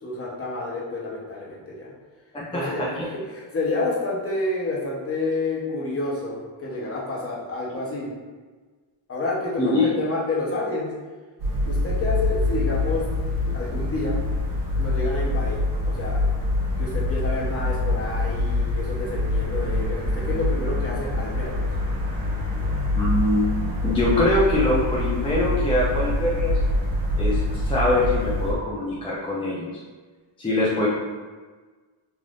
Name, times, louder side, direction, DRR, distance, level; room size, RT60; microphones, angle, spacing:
voice 1, 0.0-1.9 2.5-8.1 9.1-10.9 11.7-13.1 13.5-14.2 14.8-16.3 16.8-21.7, left 2 dB, 30° left, -5 dB, 0.8 m, -29 dB
voice 2, 2.3-2.7 3.0-3.1 9.6-9.9 23.0-23.4 23.8-26.6 27.2-29.7 30.4-30.9, left 1 dB, 10° left, -7 dB, 0.4 m, -23 dB
sound 1, 11.4-28.5, left 2 dB, 45° right, 1.1 m, -25 dB
3.4 x 2.5 x 2.4 m, 1.4 s
wide cardioid pair, 125°, 48 cm